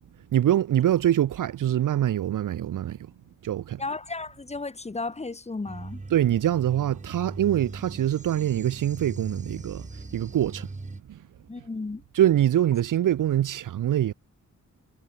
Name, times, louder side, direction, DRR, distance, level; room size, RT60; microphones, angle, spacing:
voice 1, 0.3-3.0 3.4-3.8 6.1-9.9 10.1-10.7 11.1-11.2 12.1-14.1, right 11 dB, 80° right, 0.7 m, -24 dB
voice 2, 3.8-6.0 11.5-12.0, left 3 dB, 20° left, 1.4 m, -34 dB
sound 1, 5.7-11.0, right 3 dB, 25° right, 3.9 m, -40 dB
wide cardioid pair, 145°, 31 cm